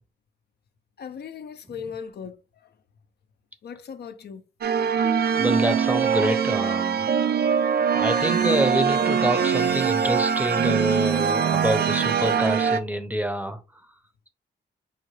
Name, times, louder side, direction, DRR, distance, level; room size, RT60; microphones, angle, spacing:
voice 1, 1.0-2.3 3.6-4.4, left 7 dB, 60° left, 0.5 m, -37 dB
sound 1, 4.6-12.8, right 7 dB, 60° right, 0.5 m, -22 dB
voice 2, 5.3-7.1 7.9-13.6, equal, 10° right, 0.6 m, -26 dB
5.5 x 2.2 x 3.1 m
cardioid pair, 90°, 19 cm